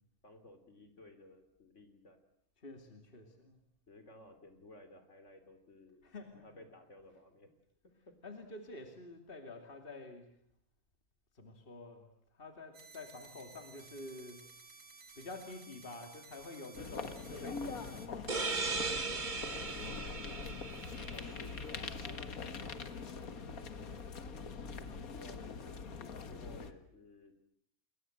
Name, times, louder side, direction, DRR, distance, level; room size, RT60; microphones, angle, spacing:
voice 1, 0.2-2.2 3.9-6.0 6.4-7.5 8.1-8.2 19.4-19.7 24.8-27.4, left 2 dB, 55° left, 8 dB, 3.5 m, -56 dB
voice 2, 2.6-3.6 6.0-6.6 8.2-10.4 11.3-14.5 14.9-18.9 20.4-21.0, left 2 dB, 40° left, 5 dB, 2.7 m, -49 dB
sound 1, 12.7-18.1, right 4 dB, 65° right, 2.5 m, -56 dB
sound 2, 16.7-26.7, left 5 dB, 75° left, 2.0 m, -43 dB
sound 3, 18.3-21.7, right 4 dB, 35° right, 1.5 m, -38 dB
29.5 x 21.5 x 7.9 m, 0.68 s
omnidirectional pair, 1.5 m